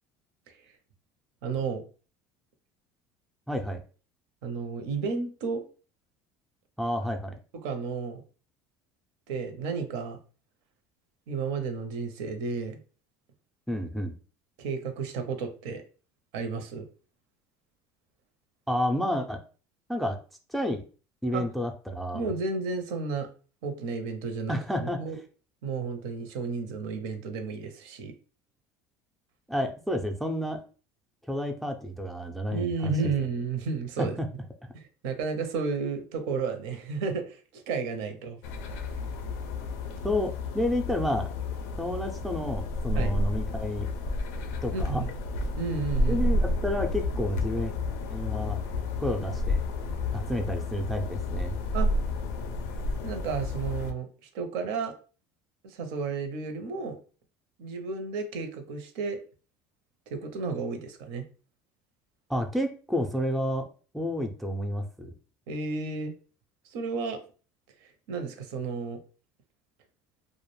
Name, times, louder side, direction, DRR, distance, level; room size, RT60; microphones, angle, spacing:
voice 1, 1.4-1.8 4.4-5.6 7.6-8.2 9.3-10.2 11.3-12.8 14.6-15.8 16.3-16.9 21.3-21.5 22.1-23.3 23.6-25.2 25.6-28.1 32.5-34.2 34.7-38.4 42.9-43.1 44.7-45.1 45.6-46.4 51.7-51.9 53.0-54.1 54.3-54.9 55.6-57.0 57.6-59.2 60.1-61.2 65.5-66.1 66.6-67.2 67.8-69.0, right 4 dB, 75° right, 7 dB, 0.6 m, -32 dB
voice 2, 3.5-3.8 6.8-7.3 13.7-14.1 18.7-19.4 19.9-20.2 20.5-20.8 21.2-22.2 24.5-25.0 29.5-30.6 31.3-32.9 34.0-34.3 40.0-41.3 41.8-43.9 44.6-45.0 46.1-47.7 48.1-48.6 49.0-49.6 50.1-51.5 62.3-63.7 63.9-65.1, left 1 dB, ahead, 3 dB, 0.3 m, -30 dB
sound 1, 38.4-53.9, left 2 dB, 90° left, 0.4 m, -31 dB
2.3 x 2.0 x 3.0 m, 0.37 s
supercardioid pair, 120°, 8 cm